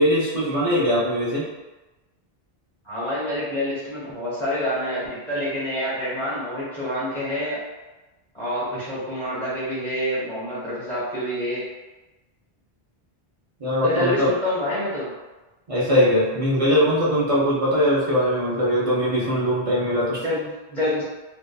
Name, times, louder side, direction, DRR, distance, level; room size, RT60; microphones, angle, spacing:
voice 1, 0.0-1.5 13.6-14.3 15.7-20.2, equal, 40° right, -8 dB, 0.6 m, -21 dB
voice 2, 2.8-7.6 8.3-11.6 13.7-15.1 20.2-21.0, left 1 dB, ahead, -9 dB, 0.9 m, -27 dB
2.7 x 2.3 x 2.2 m, 1.1 s
omnidirectional pair, 1.0 m